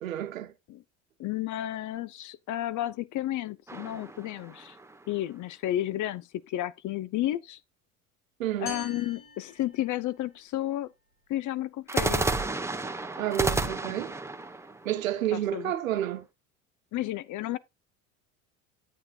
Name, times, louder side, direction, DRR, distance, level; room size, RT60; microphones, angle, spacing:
voice 1, 0.0-0.5 8.4-8.7 13.2-14.2 14.8-16.3, right 12 dB, 90° right, 1.0 m, -30 dB
voice 2, 1.2-4.8 5.1-7.6 8.6-10.9 11.3-12.2 15.3-15.7 16.9-17.6, left 14 dB, 50° left, 0.8 m, -32 dB
sound 1, 3.7-5.1 11.9-15.8, right 2 dB, 5° right, 1.3 m, -31 dB
sound 2, 8.7-10.4, left 4 dB, 90° left, 4.9 m, -44 dB
9.5 x 8.7 x 2.5 m
hypercardioid pair, 75°, 39 cm